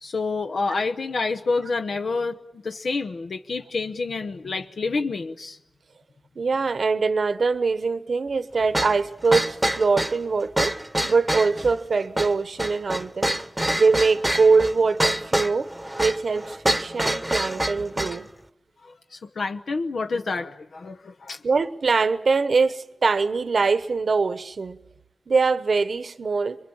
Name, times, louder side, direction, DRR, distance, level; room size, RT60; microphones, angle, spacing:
voice 1, 0.0-2.4 2.6-5.6 18.8-21.4, left 3 dB, 85° left, 6 dB, 0.9 m, -28 dB
voice 2, 6.4-10.8 11.0-13.4 13.8-15.7 16.0-18.3 21.4-24.8 25.3-26.6, right 4 dB, 70° right, 13 dB, 1.1 m, -23 dB
sound 1, 8.7-18.2, right 1 dB, 10° right, 1.0 m, -26 dB
27.5 x 23.0 x 8.8 m, 0.83 s
wide cardioid pair, 90°, 0 cm